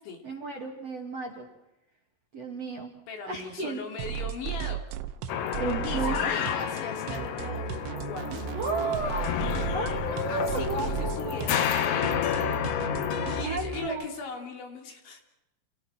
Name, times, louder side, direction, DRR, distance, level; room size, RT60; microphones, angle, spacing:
voice 1, 0.2-1.5 2.3-2.9 3.2-3.8 5.6-6.4 8.6-9.4 9.7-11.4 13.4-14.1, right 3 dB, 45° right, 0 dB, 2.4 m, -33 dB
voice 2, 3.1-4.8 5.9-8.3 10.3-12.3 13.2-15.2, left 5 dB, 65° left, 3 dB, 5.3 m, -39 dB
sound 1, 4.0-13.9, right 9 dB, 75° right, 3.3 m, -35 dB
sound 2, 5.3-13.5, left 9 dB, 90° left, 4.2 m, -30 dB
30.0 x 29.0 x 4.5 m, 0.91 s
omnidirectional pair, 5.7 m